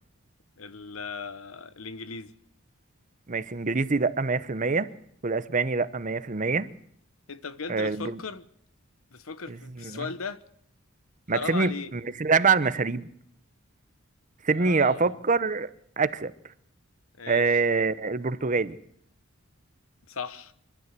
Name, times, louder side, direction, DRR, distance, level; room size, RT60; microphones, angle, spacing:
voice 1, 0.6-2.3 7.3-8.5 9.1-10.4 11.3-11.9 14.5-15.2 17.2-17.6 20.1-20.5, left 4 dB, 90° left, 1.2 m, -37 dB
voice 2, 3.3-4.9 5.2-6.7 7.7-8.2 9.5-10.1 11.3-13.1 14.4-15.7 16.0-16.3 17.3-18.8, right 4 dB, 40° right, 0.8 m, -25 dB
26.0 x 12.5 x 8.3 m
head